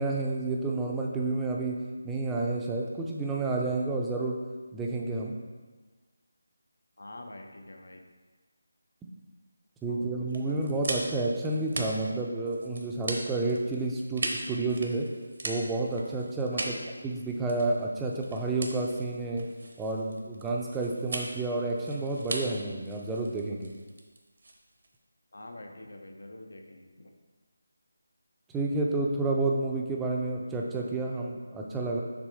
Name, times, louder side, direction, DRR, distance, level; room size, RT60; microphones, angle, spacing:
voice 1, 0.0-1.8 2.0-4.4 4.7-5.4 9.8-15.1 15.4-16.7 17.0-19.5 19.8-23.7 28.5-32.0, right 2 dB, 10° right, -2 dB, 0.5 m, -30 dB
voice 2, 7.0-8.0 9.9-10.1 10.4-11.1 16.5-16.9 25.3-27.1, left 1 dB, 75° left, 3 dB, 0.9 m, -46 dB
sound 1, 10.3-25.0, right 2 dB, 60° right, 0.9 m, -39 dB
6.2 x 3.7 x 4.9 m, 1.3 s
figure-of-eight pair, 160°, 0 cm